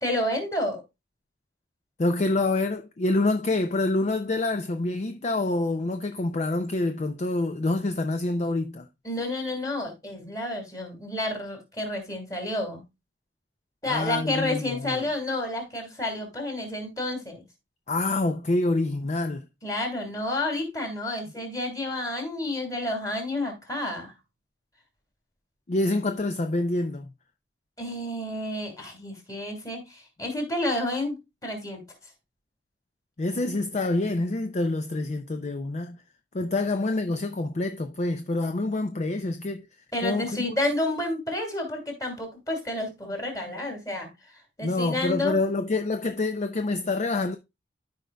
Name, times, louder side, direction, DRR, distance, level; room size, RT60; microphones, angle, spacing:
voice 1, 0.0-0.8 9.0-12.8 13.8-17.4 19.6-24.1 27.8-31.2 31.4-31.8 39.9-44.1 44.6-45.4, left 1 dB, 20° left, 2.7 m, -30 dB
voice 2, 2.0-8.9 13.9-15.0 17.9-19.5 25.7-27.1 33.2-36.0 36.3-39.7 40.0-40.3 44.6-47.4, left 2 dB, 40° left, 0.5 m, -27 dB
13.0 x 5.1 x 2.3 m
head